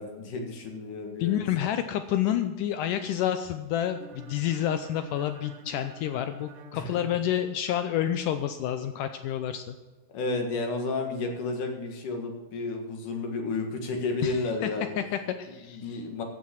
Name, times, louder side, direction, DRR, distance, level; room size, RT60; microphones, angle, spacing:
voice 1, 0.0-1.7 6.7-7.0 10.1-15.0 15.7-16.2, left 3 dB, 60° left, 3 dB, 2.9 m, -32 dB
voice 2, 1.2-9.8 14.2-14.7 15.0-16.0, left 11 dB, 85° left, 9 dB, 1.8 m, -29 dB
sound 1, 3.8-7.7, right 5 dB, 70° right, 2.6 m, -48 dB
14.0 x 8.7 x 6.4 m, 1.3 s
omnidirectional pair, 4.5 m